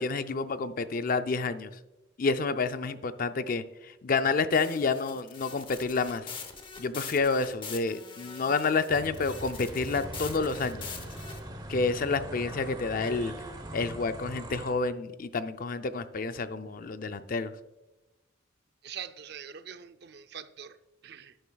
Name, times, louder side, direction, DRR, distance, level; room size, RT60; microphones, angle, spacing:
voice 1, 0.0-1.7 2.2-6.3 6.8-10.8 11.7-13.3 13.7-17.5, left 4 dB, 45° left, 11 dB, 0.5 m, -29 dB
sound 1, 4.5-11.4, left 5 dB, 25° left, 0.9 m, -43 dB
sound 2, 8.9-14.7, right 1 dB, 20° right, 1.0 m, -41 dB
voice 2, 18.8-20.8 21.0-21.3, right 8 dB, 55° right, 10 dB, 0.5 m, -43 dB
11.0 x 10.0 x 2.3 m, 1.0 s
head